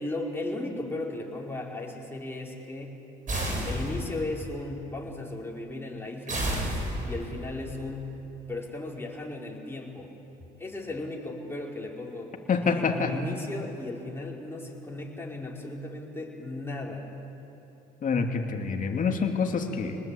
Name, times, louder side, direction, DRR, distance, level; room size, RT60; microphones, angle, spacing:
voice 1, 0.0-3.0 3.6-6.5 7.0-10.1 10.6-12.4 12.7-17.1, left 2 dB, 15° left, -2 dB, 5.2 m, -36 dB
sound 1, 3.3-4.3 6.3-7.3, right 1 dB, 45° right, 7.9 m, -30 dB
voice 2, 12.5-13.2 18.0-20.0, left 5 dB, 45° left, 3 dB, 2.8 m, -27 dB
24.5 x 20.0 x 8.7 m, 2.9 s
supercardioid pair, 75°, 18 cm